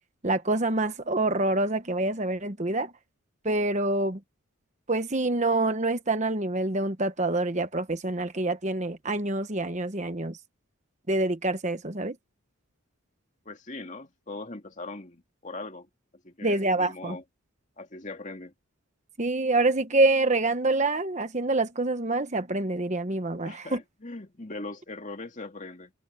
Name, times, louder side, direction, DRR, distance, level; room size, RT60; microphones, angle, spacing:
voice 1, 0.2-2.9 3.4-4.2 4.9-10.4 11.1-12.2 16.4-17.2 19.2-23.8, right 2 dB, 30° right, 1.1 m, -26 dB
voice 2, 13.5-15.9 16.2-17.2 17.8-18.5 23.4-25.9, left 2 dB, 35° left, 2.3 m, -40 dB
head